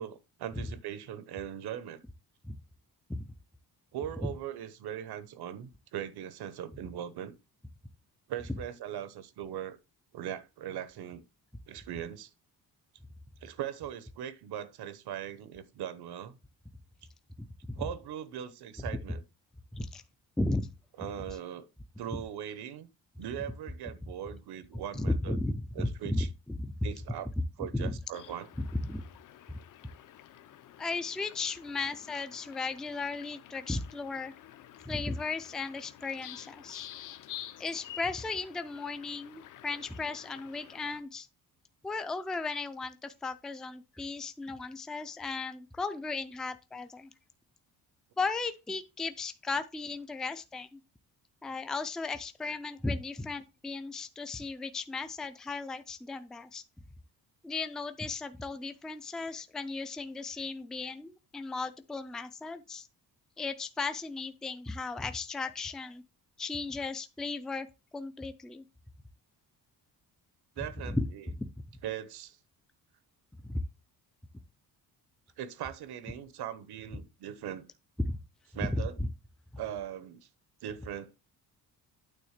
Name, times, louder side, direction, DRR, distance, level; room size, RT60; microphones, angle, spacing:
voice 1, 0.0-2.0 3.9-7.3 8.3-9.8 10.1-11.2 11.7-12.3 13.4-16.4 17.8-19.2 21.0-21.7 22.0-22.9 23.2-25.4 25.7-26.3 26.8-27.3 27.6-28.5 70.6-71.2 71.8-72.4 75.4-77.7 78.5-79.0 79.6-80.3 80.6-81.1, right 10 dB, 75° right, 1.0 m, -40 dB
voice 2, 17.4-17.8 19.7-20.0 20.4-20.7 24.9-26.7 27.7-27.9 28.6-29.0 29.5-29.6 30.8-34.3 34.9-36.9 37.6-41.3 41.8-47.1 48.2-50.8 51.4-56.6 57.4-62.9 63.4-66.0 66.4-67.7 67.9-68.6 70.9-71.0 71.4-71.5 73.4-73.6 78.0-78.2 78.7-79.1, left 3 dB, ahead, 0.3 m, -35 dB
sound 1, 28.1-41.0, left 12 dB, 55° left, 0.7 m, -50 dB
9.1 x 3.6 x 6.5 m
cardioid pair, 180°, 38 cm